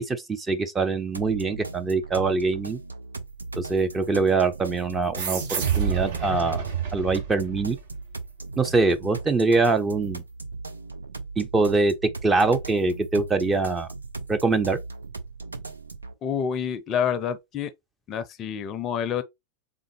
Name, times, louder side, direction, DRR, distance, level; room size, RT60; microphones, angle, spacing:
voice 1, 0.0-2.8 3.6-6.6 6.9-7.8 8.6-10.2 11.4-11.9 12.2-13.9 14.3-14.8, right 3 dB, 15° right, 0.6 m, -23 dB
sound 1, 1.1-16.1, right 3 dB, 80° right, 0.6 m, -38 dB
sound 2, 5.2-8.2, right 7 dB, 55° right, 1.1 m, -29 dB
voice 2, 16.2-17.7 18.1-19.2, left 8 dB, 30° left, 0.5 m, -28 dB
3.8 x 3.6 x 2.9 m
figure-of-eight pair, 90°, 0 cm